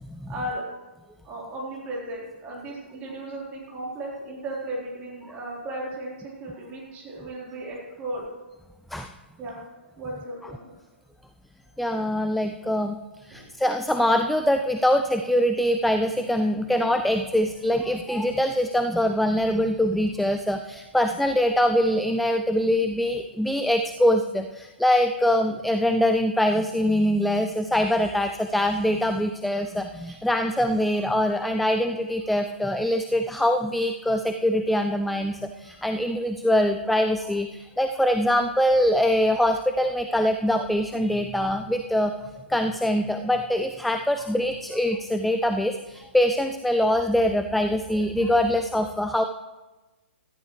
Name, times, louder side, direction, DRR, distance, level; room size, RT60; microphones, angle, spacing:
voice 1, 0.3-0.6 1.2-8.3 9.4-9.6 9.9-10.7 11.7-11.8 13.3-13.5 30.1-30.2 35.7-35.9, right 1 dB, 20° right, -4 dB, 4.3 m, -35 dB
voice 2, 11.8-13.0 13.3-42.1 42.5-49.2, left 1 dB, ahead, 7 dB, 0.4 m, -23 dB
16.5 x 13.5 x 3.3 m, 1.2 s
figure-of-eight pair, 115°, 6 cm